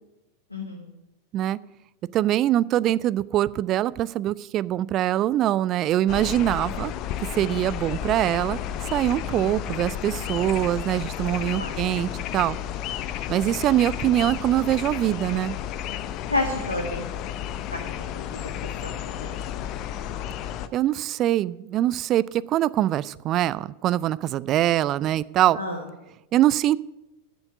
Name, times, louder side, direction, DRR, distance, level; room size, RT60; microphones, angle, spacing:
voice 1, 0.5-0.8 11.6-11.8 16.3-17.1 17.7-17.8 18.1-18.4 18.8-19.4 25.5-25.8, left 2 dB, 80° left, 1 dB, 1.4 m, -30 dB
voice 2, 2.1-6.9 7.3-12.6 13.3-15.6 20.7-25.6 26.3-26.8, right 13 dB, 35° right, 18 dB, 0.3 m, -23 dB
sound 1, 6.1-20.7, left 10 dB, 40° left, 0.5 m, -32 dB
10.0 x 7.1 x 8.0 m, 0.91 s
figure-of-eight pair, 90°, 0 cm